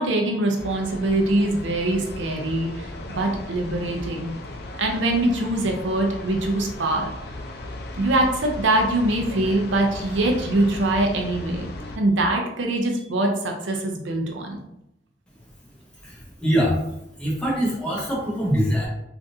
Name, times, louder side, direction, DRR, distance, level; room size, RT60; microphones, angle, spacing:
voice 1, 0.0-4.3 4.8-7.1 8.0-11.7 12.0-14.6, right 1 dB, 85° right, 2 dB, 0.5 m, -23 dB
sound 1, 0.5-12.0, left 1 dB, 55° left, 0.4 m, -36 dB
voice 2, 16.0-16.8 17.2-18.9, equal, 5° left, -5 dB, 0.9 m, -23 dB
3.5 x 2.5 x 2.6 m, 0.82 s
head